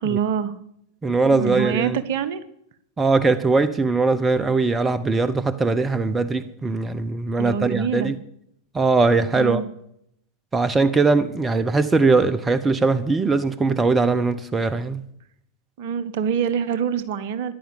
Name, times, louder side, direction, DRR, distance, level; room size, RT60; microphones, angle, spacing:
voice 1, 0.0-0.6 1.2-2.4 7.4-8.1 9.3-9.7 15.8-17.5, right 7 dB, 50° right, 1.2 m, -25 dB
voice 2, 1.0-2.0 3.0-8.2 8.7-9.6 10.5-15.0, right 3 dB, 15° right, 0.9 m, -20 dB
14.0 x 10.5 x 8.8 m
figure-of-eight pair, 90°, 0 cm